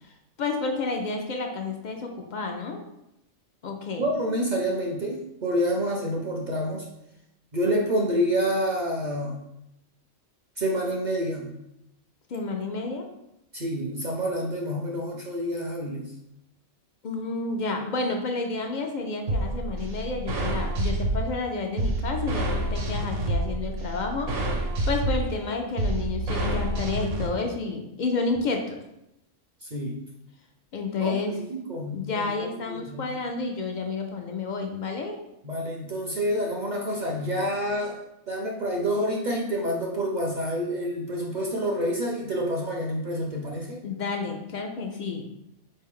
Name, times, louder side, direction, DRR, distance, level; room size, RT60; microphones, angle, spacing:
voice 1, 0.4-2.8 3.6-4.0 12.3-13.1 17.0-24.3 24.9-28.8 30.7-31.3 31.9-35.2 43.8-45.3, left 3 dB, 65° left, 3 dB, 0.4 m, -30 dB
voice 2, 4.0-6.8 7.5-9.4 10.6-11.5 13.5-16.1 29.6-30.0 31.0-33.2 35.4-38.0 38.3-43.8, equal, 50° right, 0 dB, 0.5 m, -28 dB
sound 1, 19.3-27.3, right 1 dB, 90° right, 1.1 m, -28 dB
4.2 x 3.2 x 3.7 m, 0.85 s
omnidirectional pair, 1.3 m